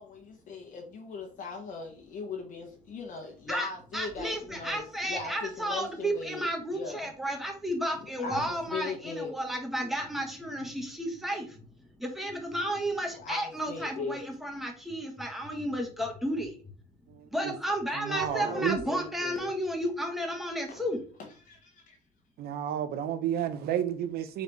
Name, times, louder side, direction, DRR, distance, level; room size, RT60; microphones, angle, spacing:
voice 1, 0.0-7.1 8.0-9.4 13.0-14.2 18.2-19.5 20.7-20.9 21.2-22.0, left 4 dB, 50° left, 0.9 m, -40 dB
voice 2, 3.9-11.6 12.0-16.5 17.3-21.0, equal, ahead, 1.1 m, -32 dB
voice 3, 17.1-17.5 17.9-18.8 22.4-24.4, right 10 dB, 65° right, 0.6 m, -31 dB
3.9 x 3.1 x 3.3 m
cardioid pair, 110°, 17 cm